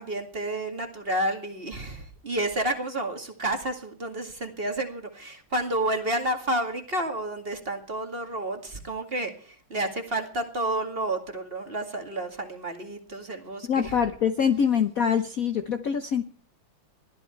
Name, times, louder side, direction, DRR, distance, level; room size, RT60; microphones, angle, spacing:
voice 1, 0.0-14.0, right 1 dB, 25° right, 5 dB, 2.3 m, -30 dB
voice 2, 13.7-16.2, left 7 dB, 55° left, 8 dB, 1.1 m, -24 dB
21.0 x 13.5 x 4.5 m, 0.43 s
omnidirectional pair, 2.3 m